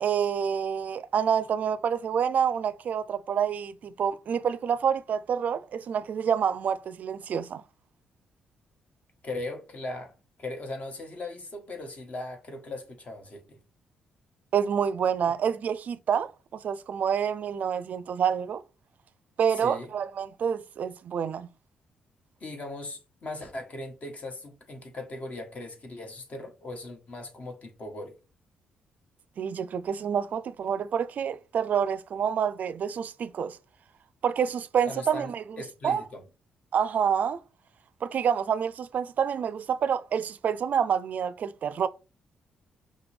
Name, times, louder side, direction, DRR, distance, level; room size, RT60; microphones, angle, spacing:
voice 1, 0.0-7.6 14.5-18.6 19.4-21.5 29.4-33.6 34.2-35.4 35.8-36.0 36.7-37.4 38.0-41.9, right 7 dB, 60° right, 0.4 m, -27 dB
voice 2, 9.2-10.1 10.4-13.6 19.5-19.9 22.4-28.2 34.9-36.2, left 2 dB, 50° left, 1.3 m, -39 dB
5.7 x 2.2 x 3.4 m
supercardioid pair, 50°, 3 cm